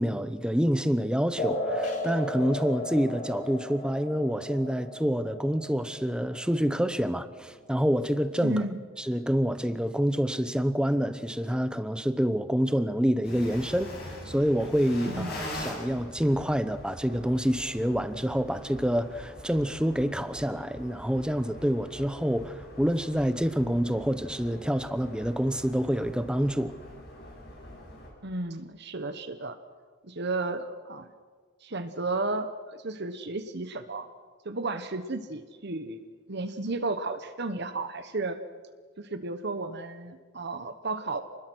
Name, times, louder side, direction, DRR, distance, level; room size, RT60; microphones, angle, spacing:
voice 1, 0.0-8.6 9.0-26.7, equal, 5° right, 0.8 m, -27 dB
sound 1, 1.4-8.4, left 1 dB, 35° left, 3.3 m, -36 dB
voice 2, 8.4-8.7 15.1-15.4 28.2-29.6 30.0-31.1 31.6-34.1 34.4-36.0 36.3-38.4 39.0-41.2, right 2 dB, 50° right, 1.1 m, -33 dB
sound 2, 13.2-28.1, left 1 dB, 50° left, 7.7 m, -43 dB
28.5 x 20.5 x 6.3 m
head